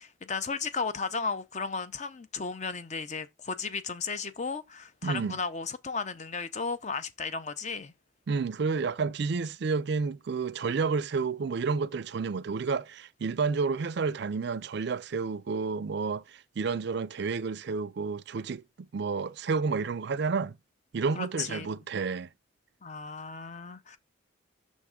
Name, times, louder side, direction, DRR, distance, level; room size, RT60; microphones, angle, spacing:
voice 1, 0.0-7.9 21.1-21.7 22.8-24.0, left 4 dB, 35° left, 0.5 m, -34 dB
voice 2, 5.0-5.4 8.3-18.6 18.9-20.6 20.9-22.3, right 4 dB, 55° right, 0.4 m, -30 dB
6.4 x 3.5 x 5.0 m
head